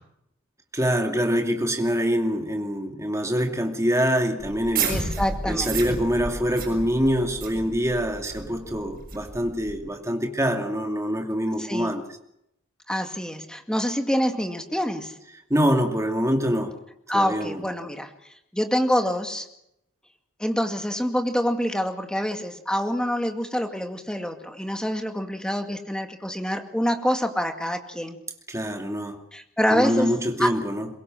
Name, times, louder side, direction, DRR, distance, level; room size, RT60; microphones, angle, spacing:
voice 1, 0.7-4.9 5.5-12.0 15.5-16.8 17.1-17.6 28.5-29.2 29.7-30.9, equal, 15° right, 5 dB, 2.4 m, -25 dB
sound 1, 4.4-9.8, right 4 dB, 40° right, 7.1 m, -32 dB
voice 2, 4.9-5.8 11.6-11.9 12.9-15.1 17.1-18.1 18.5-19.5 20.4-28.2 29.3-30.1 30.4-30.5, equal, 5° left, 5 dB, 2.2 m, -26 dB
23.0 x 22.0 x 7.7 m, 0.80 s
head